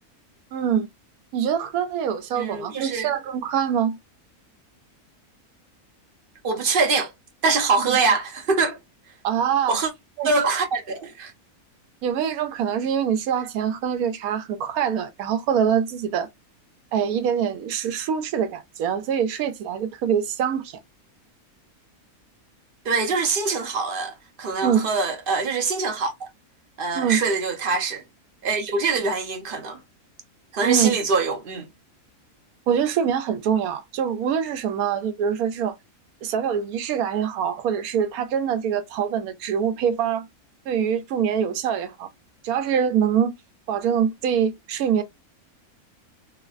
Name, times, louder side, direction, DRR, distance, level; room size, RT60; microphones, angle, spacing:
voice 1, 0.5-0.9 1.3-4.0 7.8-8.0 9.2-9.8 10.2-10.3 12.0-16.3 16.9-20.7 24.6-24.9 26.9-27.2 30.6-31.0 32.7-35.8 36.2-40.3 40.7-42.1 42.4-43.3 43.7-45.0, right 8 dB, 80° right, 1.1 m, -24 dB
voice 2, 2.3-3.1 6.4-7.1 7.4-8.8 9.7-9.9 10.2-11.3 22.8-26.3 26.8-28.0 28.4-29.8 30.5-31.7, right 4 dB, 50° right, 0.7 m, -24 dB
3.2 x 2.1 x 2.3 m
omnidirectional pair, 1.5 m